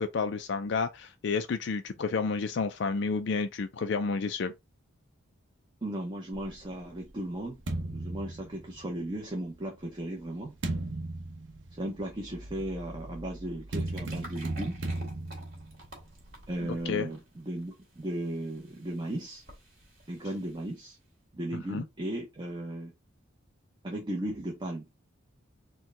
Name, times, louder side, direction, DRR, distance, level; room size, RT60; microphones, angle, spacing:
voice 1, 0.0-4.5 16.7-17.1 21.5-21.8, left 4 dB, 60° left, 0.4 m, -30 dB
voice 2, 5.8-10.6 11.7-14.8 16.5-19.4 20.1-21.0 21.3-22.9 23.8-24.9, right 1 dB, 25° right, 0.8 m, -36 dB
sound 1, 6.3-9.1 9.9-16.9, right 2 dB, 65° right, 0.8 m, -38 dB
sound 2, 13.7-21.1, right 1 dB, 50° right, 2.2 m, -52 dB
4.4 x 2.3 x 3.7 m
head